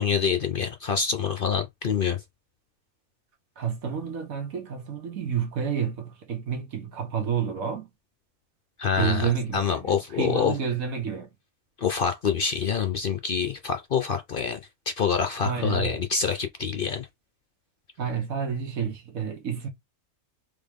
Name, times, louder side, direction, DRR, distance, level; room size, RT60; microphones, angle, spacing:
voice 1, 0.0-2.2 8.8-10.6 11.8-14.6 14.9-17.1, left 6 dB, 55° left, 0.6 m, -26 dB
voice 2, 3.6-7.9 9.0-11.3 15.4-16.0 18.0-19.7, right 7 dB, 80° right, 1.7 m, -29 dB
3.9 x 3.6 x 3.5 m
omnidirectional pair, 1.4 m